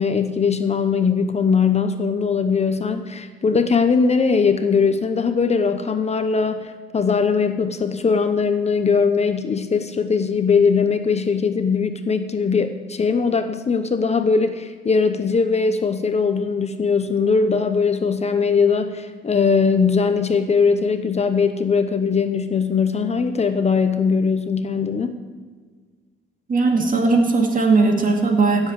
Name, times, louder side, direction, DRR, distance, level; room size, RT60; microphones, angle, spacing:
voice 1, 0.0-25.1, left 5 dB, 35° left, 9 dB, 0.8 m, -20 dB
voice 2, 26.5-28.7, right 3 dB, 45° right, 3 dB, 2.3 m, -18 dB
16.0 x 7.4 x 6.5 m, 1.5 s
cardioid pair, 90°, 20 cm